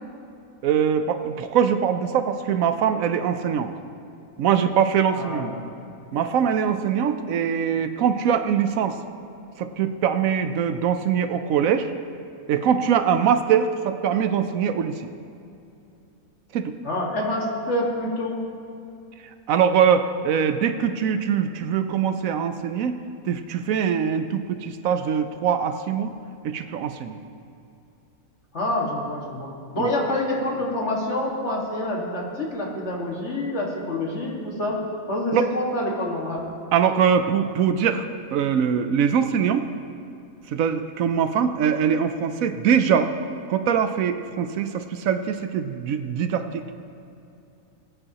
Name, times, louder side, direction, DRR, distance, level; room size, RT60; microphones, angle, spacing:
voice 1, 0.6-3.7 4.4-5.5 6.1-9.0 9.6-11.9 12.5-15.1 16.5-16.8 19.5-23.0 23.2-26.1 26.4-27.2 29.8-29.9 35.3-35.5 36.7-38.0 38.3-39.6 40.5-43.1 43.5-46.6, right 7 dB, 75° right, 9 dB, 1.0 m, -22 dB
voice 2, 5.1-5.6 16.8-18.4 28.5-34.8 35.1-36.5, left 1 dB, 55° left, -2 dB, 2.1 m, -27 dB
20.0 x 9.0 x 2.9 m, 2.6 s
omnidirectional pair, 1.5 m